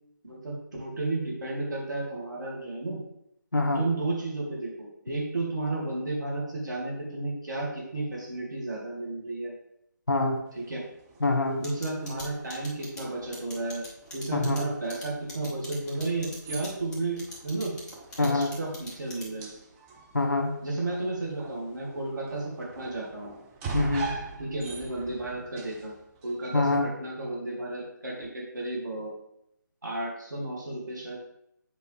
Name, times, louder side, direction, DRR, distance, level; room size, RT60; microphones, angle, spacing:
voice 1, 0.8-3.0 3.7-9.5 10.5-10.8 11.6-13.8 14.1-17.7 18.2-19.5 20.6-23.3 24.4-25.9 26.2-29.1 29.8-31.2, right 2 dB, 65° right, -3 dB, 2.5 m, -33 dB
voice 2, 3.5-3.8 10.1-10.4 11.2-11.6 14.3-14.7 18.2-18.5 20.1-20.5 23.7-24.1 26.5-26.9, left 2 dB, 70° left, 4 dB, 1.2 m, -25 dB
sound 1, 10.5-26.7, right 3 dB, 10° right, 0.5 m, -43 dB
sound 2, 11.6-19.5, left 1 dB, 10° left, 0.9 m, -43 dB
8.0 x 4.5 x 3.4 m, 0.79 s
figure-of-eight pair, 150°, 11 cm